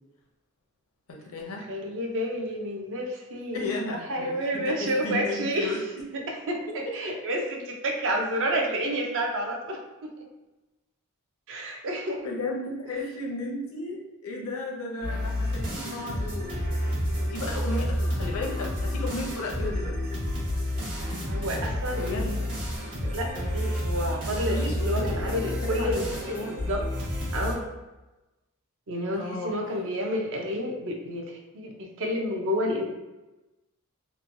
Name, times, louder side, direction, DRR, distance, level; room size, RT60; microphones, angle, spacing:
voice 1, 1.1-1.7 3.5-5.8 6.8-6.9 12.2-19.9 21.9-22.4 24.4-26.0 26.3-26.6 29.1-29.7, left 2 dB, 70° left, 0 dB, 0.6 m, -34 dB
voice 2, 1.7-3.7 4.1-5.8 6.1-10.2 11.5-12.3 21.3-22.4 23.0-26.8 27.3-27.7 28.9-32.8, equal, 60° right, 1 dB, 0.5 m, -30 dB
sound 1, 15.0-27.5, left 1 dB, 85° right, 1.2 m, -30 dB
3.0 x 2.1 x 2.5 m, 1.1 s
head